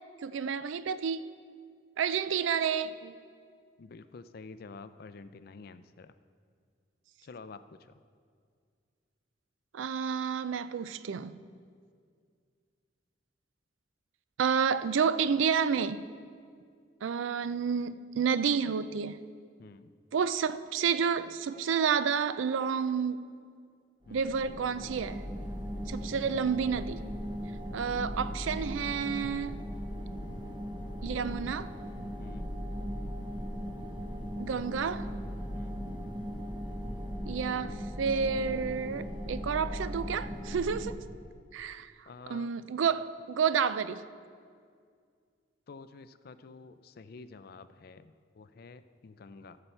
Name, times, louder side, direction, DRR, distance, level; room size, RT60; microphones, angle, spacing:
voice 1, 0.2-1.3 2.0-3.1 9.7-11.3 14.4-16.1 17.0-19.2 20.1-23.2 24.1-25.3 25.8-27.0 27.7-29.6 31.0-31.7 34.4-35.1 37.3-40.9 41.5-41.9 42.3-44.0, right 6 dB, 80° right, 0.4 m, -30 dB
voice 2, 3.8-6.1 7.2-8.0 19.6-19.9 24.1-24.4 32.2-32.5 35.5-35.8 42.1-42.5 45.7-49.6, left 4 dB, 50° left, 0.4 m, -49 dB
sound 1, 24.0-40.9, equal, 25° right, 1.0 m, -38 dB
14.0 x 6.9 x 4.4 m
head